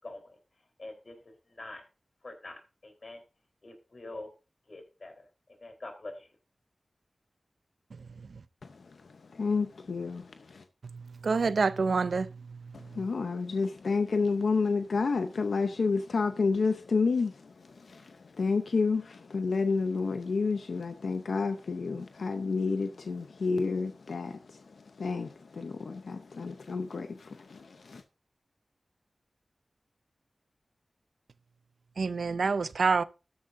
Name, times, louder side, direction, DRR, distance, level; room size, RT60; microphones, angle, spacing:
voice 1, 0.0-0.4 0.8-1.2 1.5-1.8 2.2-3.2 3.6-4.3 4.7-5.3 5.6-6.3, left 2 dB, 55° left, 3.9 m, -44 dB
voice 2, 8.6-10.6 12.7-28.0, left 4 dB, 90° left, 0.7 m, -30 dB
voice 3, 10.8-12.6 32.0-33.0, right 4 dB, 85° right, 0.5 m, -27 dB
13.0 x 11.5 x 2.6 m
wide cardioid pair, 65°, 0 cm